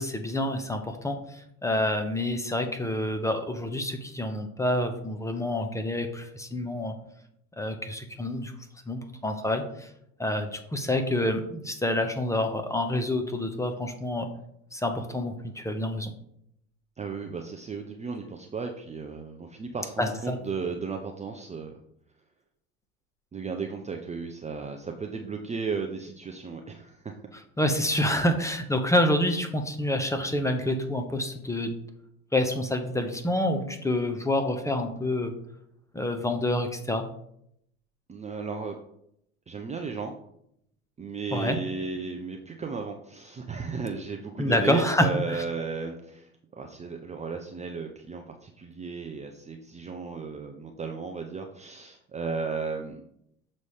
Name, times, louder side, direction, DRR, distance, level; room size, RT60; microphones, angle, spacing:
voice 1, 0.0-6.9 7.6-8.5 8.9-9.9 10.2-14.3 14.7-16.1 20.0-20.4 27.6-31.7 32.3-35.3 35.9-37.0 41.3-41.6 44.4-45.4, left 1 dB, 5° left, 5 dB, 0.9 m, -27 dB
voice 2, 17.0-21.7 23.3-27.1 38.1-38.8 39.5-40.1 41.0-53.0, right 4 dB, 15° right, 3 dB, 0.6 m, -35 dB
6.7 x 4.1 x 4.9 m, 0.73 s
hypercardioid pair, 85°, 41 cm